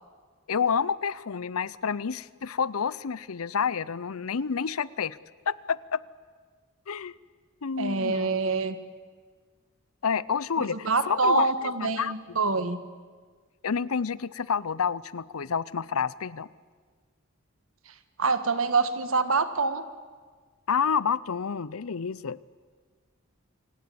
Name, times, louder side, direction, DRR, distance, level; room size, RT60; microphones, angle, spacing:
voice 1, 0.5-5.2 5.5-6.0 6.9-7.1 7.6-8.4 10.0-12.1 13.6-16.5 20.7-22.4, left 6 dB, 80° left, 20 dB, 0.6 m, -29 dB
voice 2, 7.8-8.8 10.6-12.8 18.2-19.8, right 3 dB, 70° right, 11 dB, 1.6 m, -26 dB
27.0 x 18.0 x 8.6 m, 1.6 s
head